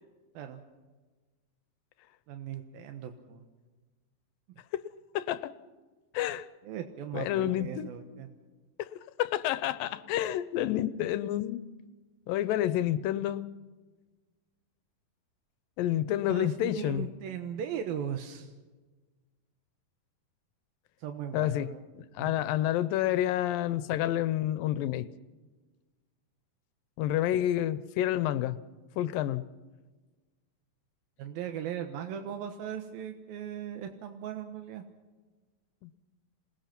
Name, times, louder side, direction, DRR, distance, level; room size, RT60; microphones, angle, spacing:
voice 1, 2.3-3.5 6.6-8.3 16.3-18.5 21.0-21.8 22.2-22.4 31.2-34.8, right 9 dB, 90° right, 6 dB, 3.1 m, -38 dB
voice 2, 5.1-5.5 6.1-6.5 7.1-7.9 8.8-8.9 9.2-11.6 12.3-13.4 15.8-17.1 21.3-21.7 22.0-25.1 27.0-28.6 29.0-29.4 35.8-35.9, left 12 dB, 80° left, 14 dB, 2.5 m, -29 dB
27.0 x 20.0 x 6.0 m, 1.3 s
omnidirectional pair, 4.0 m